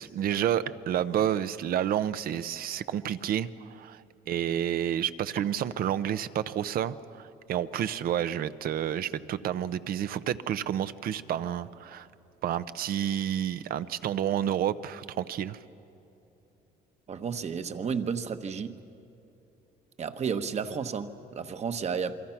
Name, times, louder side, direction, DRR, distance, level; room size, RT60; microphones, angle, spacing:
voice 1, 0.0-12.1 12.4-15.6, right 10 dB, 60° right, 13 dB, 0.8 m, -30 dB
voice 2, 17.1-18.8 20.0-22.1, right 6 dB, 40° right, 8 dB, 1.2 m, -32 dB
28.0 x 23.0 x 5.9 m, 2.8 s
cardioid pair, 110°, 17 cm